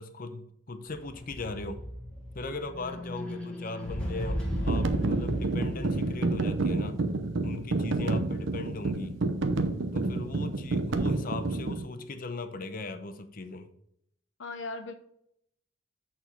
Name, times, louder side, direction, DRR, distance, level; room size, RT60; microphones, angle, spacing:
voice 1, 0.0-1.8 2.3-7.0 7.4-9.2 9.9-13.7, left 3 dB, 45° left, 0.7 m, -39 dB
sound 1, 1.0-6.3, equal, 5° left, 1.3 m, -35 dB
voice 2, 2.9-3.3 14.4-14.9, left 3 dB, 70° left, 0.9 m, -39 dB
sound 2, 4.5-11.8, right 2 dB, 70° right, 0.7 m, -29 dB
8.1 x 4.3 x 4.4 m
head